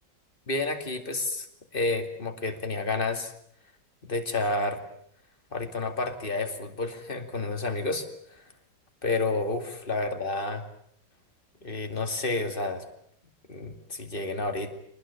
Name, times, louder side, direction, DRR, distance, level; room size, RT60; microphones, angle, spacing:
voice 1, 0.5-1.5 1.7-3.3 4.0-4.8 5.5-8.1 9.0-10.6 11.6-12.8 13.5-14.8, left 2 dB, 30° left, 5 dB, 2.6 m, -30 dB
25.5 x 19.5 x 8.7 m, 0.67 s
omnidirectional pair, 1.9 m